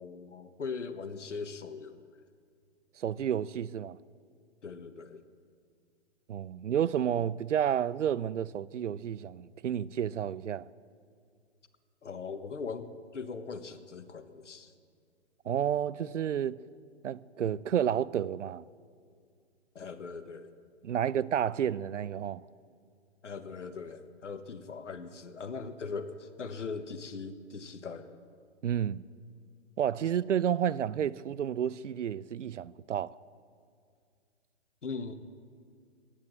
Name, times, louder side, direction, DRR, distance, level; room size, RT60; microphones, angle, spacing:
voice 1, 0.0-2.2 4.6-5.2 12.0-14.7 19.7-20.5 23.2-28.2 34.8-35.1, left 5 dB, 90° left, 1.3 m, -40 dB
voice 2, 3.0-4.0 6.3-10.7 15.5-16.6 17.0-18.6 20.8-22.4 28.6-29.0 29.8-33.1, right 9 dB, 85° right, 0.5 m, -30 dB
16.0 x 10.0 x 7.4 m
hypercardioid pair, 130°, 35 cm